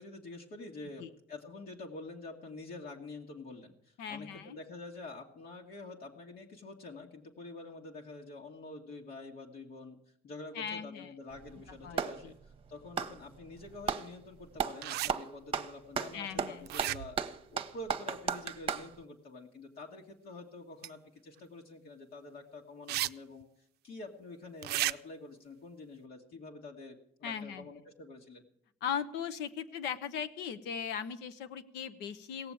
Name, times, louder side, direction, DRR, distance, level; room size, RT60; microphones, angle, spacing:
voice 1, 0.0-28.4, left 2 dB, 65° left, 0 dB, 1.7 m, -47 dB
voice 2, 4.0-4.6 10.5-11.1 11.8-12.3 16.1-16.7 27.2-27.7 28.8-32.5, left 7 dB, 90° left, 10 dB, 1.0 m, -38 dB
Clapping, 11.3-12.2 12.8-14.1 14.6-14.8 15.1-18.9, right 7 dB, 35° right, 0.9 m, -34 dB
sound 1, 14.8-15.1 16.7-17.3 20.8-20.9 22.9-23.1 23.4-23.5 24.6-24.9, right 15 dB, 75° right, 0.5 m, -33 dB
17.5 x 7.0 x 8.7 m, 0.70 s
cardioid pair, 110°, 17 cm